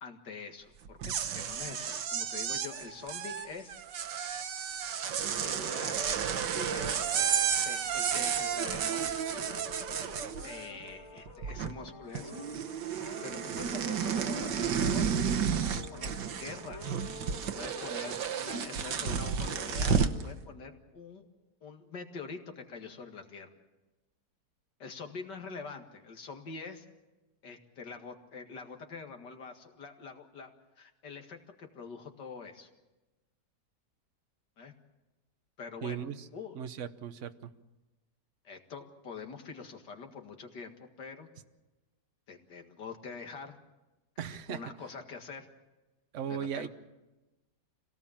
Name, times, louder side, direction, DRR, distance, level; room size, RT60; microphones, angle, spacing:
voice 1, 0.0-3.8 5.4-7.4 7.6-9.1 10.4-12.4 13.2-15.2 15.7-16.8 17.5-21.3 21.6-23.5 24.8-26.8 27.4-30.5 30.8-32.7 34.6-34.7 35.6-36.1 36.3-36.6 38.4-41.3 42.3-43.6 44.5-45.5 46.3-46.7, left 5 dB, 80° left, 5 dB, 2.6 m, -45 dB
sound 1, 0.9-10.9 11.2-11.9 12.1-20.2, right 7 dB, 85° right, 1.7 m, -32 dB
sound 2, 5.3-20.7, left 1 dB, 40° left, 2.6 m, -48 dB
voice 2, 35.8-36.1 36.6-37.5 44.2-44.6 46.1-46.7, right 8 dB, 50° right, 10 dB, 1.2 m, -37 dB
26.5 x 18.0 x 7.3 m, 1.1 s
omnidirectional pair, 1.8 m